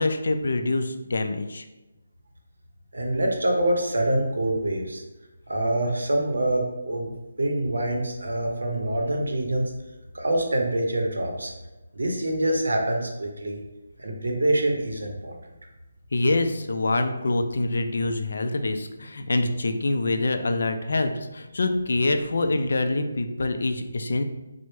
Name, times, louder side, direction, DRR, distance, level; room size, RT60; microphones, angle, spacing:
voice 1, 0.0-1.6 16.1-24.2, left 2 dB, 70° left, 7 dB, 0.3 m, -25 dB
voice 2, 2.9-5.0 5.5-9.7 10.1-11.5 11.9-13.6 14.0-15.4, right 1 dB, 90° right, 2 dB, 0.6 m, -25 dB
3.2 x 2.0 x 3.1 m, 1.1 s
hypercardioid pair, 165°, 0 cm